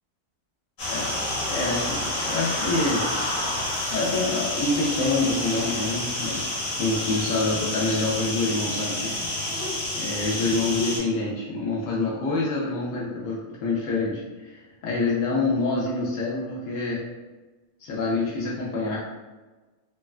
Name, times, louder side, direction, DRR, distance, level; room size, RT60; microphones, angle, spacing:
sound 1, 0.8-11.0, left 1 dB, 55° left, 1.2 m, -29 dB
voice 1, 1.5-3.1 3.9-9.1 10.0-17.0 17.8-19.0, left 3 dB, 85° left, -5 dB, 0.7 m, -26 dB
3.3 x 2.2 x 2.3 m, 1.2 s
omnidirectional pair, 2.0 m